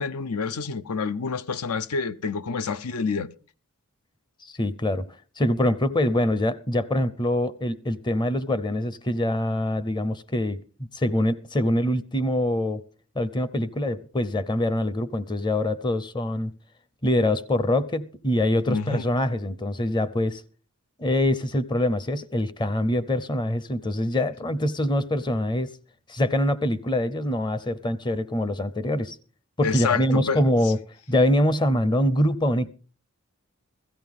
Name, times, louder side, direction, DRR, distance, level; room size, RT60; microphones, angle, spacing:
voice 1, 0.0-3.3 18.7-19.1 29.6-30.4, left 5 dB, 80° left, 0.6 m, -28 dB
voice 2, 4.4-5.1 5.4-10.6 10.9-12.8 13.2-16.5 17.0-20.4 21.0-25.7 26.1-29.2 29.6-30.8 31.1-32.7, left 1 dB, 20° left, 0.6 m, -24 dB
16.0 x 14.0 x 3.7 m
head